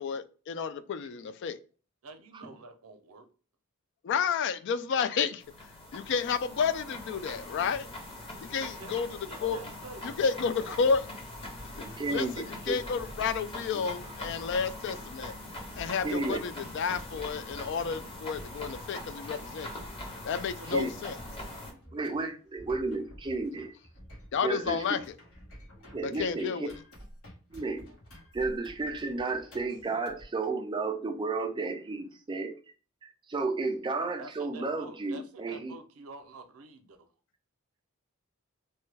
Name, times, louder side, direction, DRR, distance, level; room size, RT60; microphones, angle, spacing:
voice 1, 0.0-1.6 4.0-5.4 5.9-7.9 8.4-9.1 9.4-9.6 10.2-11.0 12.1-15.3 15.8-19.9 20.2-21.1 24.3-25.0 26.0-26.7, left 6 dB, 55° left, 0.3 m, -31 dB
voice 2, 2.0-3.3 8.6-9.0 9.3-10.8 20.5-20.8 21.6-21.8 34.2-37.1, right 3 dB, 85° right, 0.5 m, -48 dB
sound 1, 5.4-21.7, left 1 dB, 25° left, 0.8 m, -43 dB
sound 2, 10.6-30.3, equal, 80° left, 1.4 m, -50 dB
voice 3, 11.8-12.7 13.7-13.8 16.0-16.4 20.7-20.9 21.9-23.7 24.4-24.8 25.9-26.7 27.5-27.9 28.3-32.5 33.0-35.7, right 3 dB, 20° right, 0.4 m, -33 dB
3.2 x 2.2 x 3.2 m
head